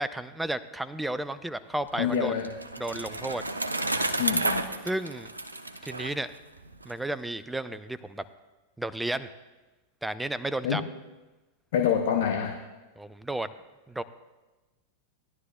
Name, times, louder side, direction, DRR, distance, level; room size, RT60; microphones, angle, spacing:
voice 1, 0.0-2.4 2.8-3.4 4.8-5.3 5.8-6.3 6.8-8.2 8.8-9.3 10.0-10.8 13.0-13.5 13.9-14.0, right 1 dB, 5° right, 14 dB, 0.5 m, -32 dB
Bicycle, 1.8-6.9, right 2 dB, 80° right, 0.6 m, -31 dB
voice 2, 1.9-2.5 4.2-4.7 10.6-10.8 11.7-12.6, left 8 dB, 55° left, 4 dB, 0.7 m, -26 dB
18.0 x 11.0 x 2.2 m, 1.1 s
figure-of-eight pair, 90°, 0 cm